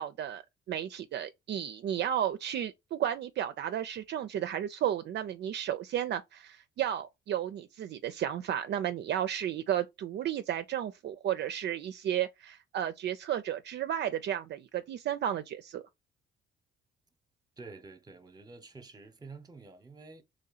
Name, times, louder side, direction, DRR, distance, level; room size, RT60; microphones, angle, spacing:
voice 1, 0.0-15.8, right 10 dB, 60° right, 0.4 m, -33 dB
voice 2, 17.6-20.2, right 3 dB, 20° right, 0.8 m, -49 dB
3.1 x 2.8 x 3.9 m
cardioid pair, 90°, 20 cm